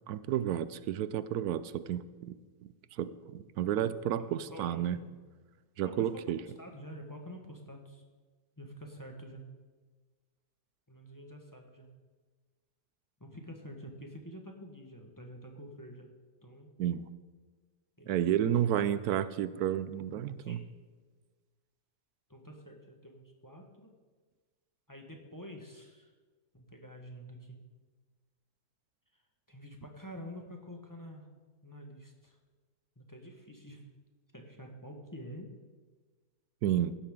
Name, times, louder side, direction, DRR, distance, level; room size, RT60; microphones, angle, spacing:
voice 1, 0.1-2.4 3.0-5.0 5.8-6.4 16.8-17.1 18.1-20.6 36.6-37.0, right 10 dB, 85° right, 15 dB, 1.1 m, -31 dB
voice 2, 4.2-5.0 5.8-6.2 6.6-8.0 8.6-9.4 10.9-11.9 13.2-16.1 16.4-16.7 18.0-18.8 20.4-20.7 22.3-23.9 24.9-26.1 26.5-27.6 29.5-31.3 31.6-32.4 33.0-33.9 34.3-35.5, equal, 15° left, 2 dB, 1.2 m, -48 dB
15.5 x 12.0 x 3.7 m, 1.4 s
omnidirectional pair, 1.6 m